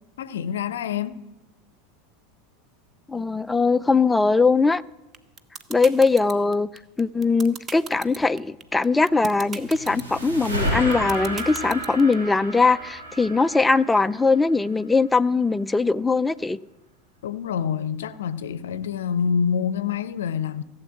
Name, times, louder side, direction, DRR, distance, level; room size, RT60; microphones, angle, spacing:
voice 1, 0.2-1.2 17.2-20.6, left 7 dB, 65° left, 0.6 m, -26 dB
voice 2, 3.1-4.8 5.7-6.7 7.0-16.6, left 4 dB, 10° left, 0.4 m, -21 dB
sound 1, 5.1-12.1, right 6 dB, 30° right, 0.8 m, -36 dB
sound 2, 9.4-14.7, equal, 80° right, 5.5 m, -31 dB
15.5 x 7.9 x 7.3 m
figure-of-eight pair, 80°, 0 cm